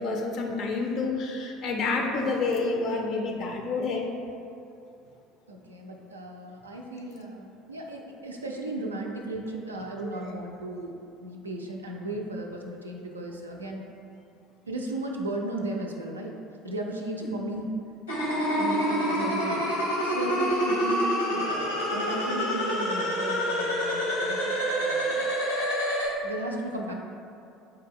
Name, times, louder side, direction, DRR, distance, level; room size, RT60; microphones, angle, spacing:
voice 1, 0.0-4.1 10.0-10.3 17.2-17.4, left 3 dB, 50° left, 1 dB, 0.4 m, -29 dB
voice 2, 5.5-10.9 11.2-13.8 14.7-16.3 16.6-17.7 18.6-19.7 20.0-25.3 26.2-26.9, right 2 dB, 85° right, 0 dB, 0.3 m, -35 dB
sound 1, 18.1-26.1, equal, 85° left, 0.7 m, -27 dB
4.2 x 2.2 x 3.5 m, 2.6 s
figure-of-eight pair, 65°, 0 cm